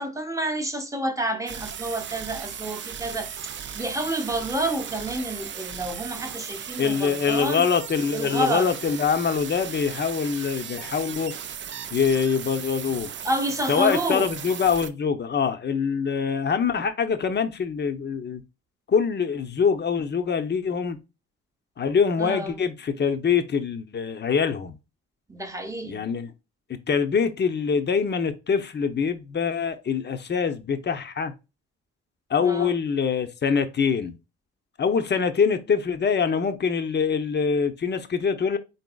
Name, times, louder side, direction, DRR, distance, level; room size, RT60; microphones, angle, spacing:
voice 1, 0.0-7.6 8.1-8.7 13.2-14.3 22.2-22.6 25.3-26.0 32.4-32.8, right 1 dB, 10° right, 0.9 m, -29 dB
sound 1, 1.5-14.9, right 8 dB, 40° right, 0.4 m, -37 dB
voice 2, 6.8-11.3 11.9-13.1 13.7-18.4 18.9-21.0 21.8-24.8 25.8-26.3 26.9-31.3 32.3-34.2 34.8-38.6, left 6 dB, 35° left, 0.7 m, -24 dB
4.0 x 4.0 x 2.3 m
cardioid pair, 90°, 30 cm